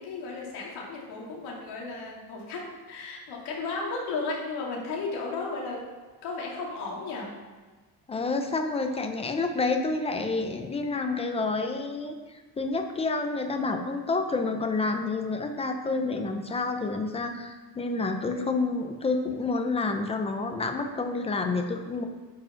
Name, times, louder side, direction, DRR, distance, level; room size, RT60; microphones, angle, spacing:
voice 1, 0.0-5.9 6.2-7.4 9.2-9.5 18.2-18.5, left 3 dB, 80° left, -2 dB, 2.6 m, -35 dB
voice 2, 8.1-12.2 12.6-22.1, left 3 dB, 15° left, 5 dB, 0.6 m, -29 dB
9.0 x 5.3 x 5.8 m, 1.3 s
cardioid pair, 175°, 38 cm